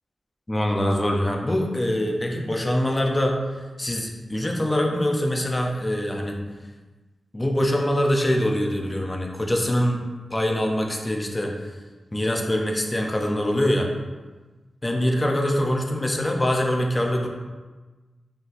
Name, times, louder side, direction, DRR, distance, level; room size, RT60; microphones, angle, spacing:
voice 1, 0.5-3.4 3.8-6.4 7.3-10.0 10.3-11.5 12.1-13.9 14.8-17.3, left 1 dB, 20° left, 1 dB, 0.5 m, -24 dB
4.2 x 4.0 x 2.6 m, 1.3 s
wide cardioid pair, 125°, 0 cm